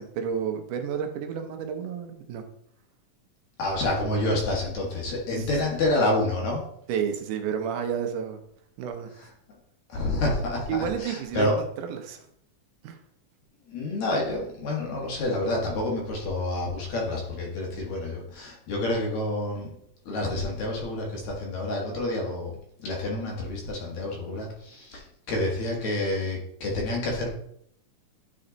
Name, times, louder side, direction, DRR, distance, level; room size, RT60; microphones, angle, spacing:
voice 1, 0.0-2.4 5.3-5.5 6.9-8.4 8.8-9.1 10.7-12.3 12.8-13.0, right 7 dB, 80° right, 5 dB, 2.3 m, -31 dB
voice 2, 3.6-6.6 9.9-11.5 13.7-19.7 20.1-27.3, left 1 dB, 65° left, -1 dB, 2.8 m, -28 dB
9.9 x 4.3 x 3.9 m, 0.70 s
omnidirectional pair, 3.7 m